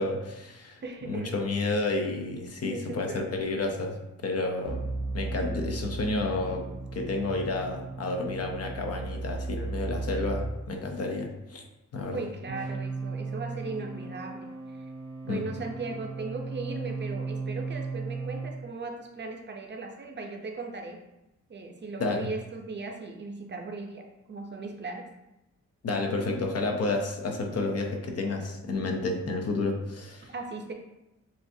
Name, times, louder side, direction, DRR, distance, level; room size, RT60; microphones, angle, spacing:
voice 1, 0.0-4.0 4.2-4.9 5.1-11.6 11.9-12.2 15.3-15.5 22.0-22.3 25.8-30.3, left 2 dB, 55° left, 3 dB, 0.7 m, -30 dB
voice 2, 0.8-1.4 2.6-3.5 12.1-14.8 15.2-21.0 21.5-25.1 27.5-27.6 30.3-30.7, right 3 dB, 35° right, 2 dB, 0.6 m, -38 dB
sound 1, 4.6-10.6 12.5-18.6, right 3 dB, 75° right, 1.0 m, -36 dB
6.9 x 2.4 x 2.7 m, 0.94 s
wide cardioid pair, 140°, 30 cm